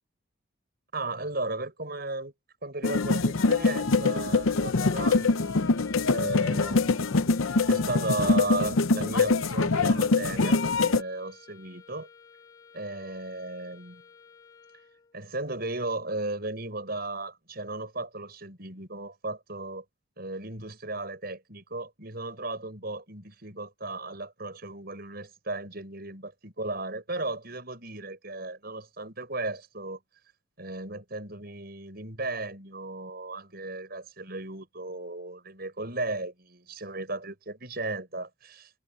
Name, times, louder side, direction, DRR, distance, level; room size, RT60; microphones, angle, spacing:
voice 1, 0.9-2.3 2.6-5.6 6.1-12.1 12.7-14.0 15.1-19.8 20.2-30.0 30.6-38.7, right 2 dB, 45° right, 7.1 m, -35 dB
sound 1, 2.8-11.0, left 3 dB, 75° left, 0.7 m, -24 dB
sound 2, 4.4-15.2, left 6 dB, 20° left, 3.5 m, -54 dB
head